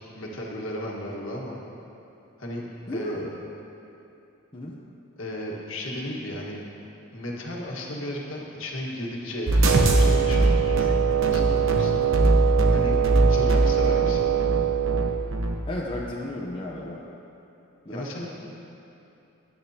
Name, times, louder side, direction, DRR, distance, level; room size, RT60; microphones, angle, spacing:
voice 1, 0.0-1.6 2.4-2.6 2.9-3.3 5.2-6.6 7.1-11.0 11.3-12.1 12.4-13.0 13.3-14.3 17.9-18.3, left 1 dB, 65° left, -3 dB, 1.7 m, -34 dB
voice 2, 2.9-3.2 4.5-4.8 12.9-13.2 15.7-17.0 17.8-18.1 18.4-18.5, left 1 dB, 25° left, -4 dB, 0.8 m, -34 dB
sound 1, 9.5-15.5, right 1 dB, 65° right, 1.0 m, -22 dB
Wind instrument woodwind instrument, 9.6-15.3, right 11 dB, 80° right, 0.4 m, -24 dB
16.0 x 10.5 x 2.9 m, 2.9 s
head